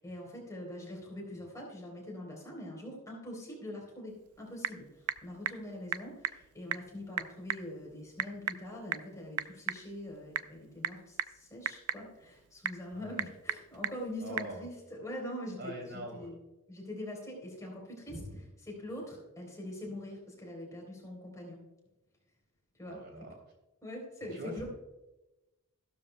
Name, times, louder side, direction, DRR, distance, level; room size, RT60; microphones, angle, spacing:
voice 1, 0.0-16.4 16.7-18.2 18.7-21.6 22.8-23.0 23.8-24.6, left 1 dB, 15° left, -2 dB, 3.6 m, -43 dB
Typing / Telephone, 4.1-14.6, right 10 dB, 80° right, 0.5 m, -39 dB
voice 2, 12.9-13.3 14.2-14.7 15.6-16.3 18.1-18.2 22.9-23.3 24.3-24.6, right 1 dB, 50° right, 1 dB, 2.9 m, -43 dB
14.5 x 12.0 x 2.2 m, 1.0 s
head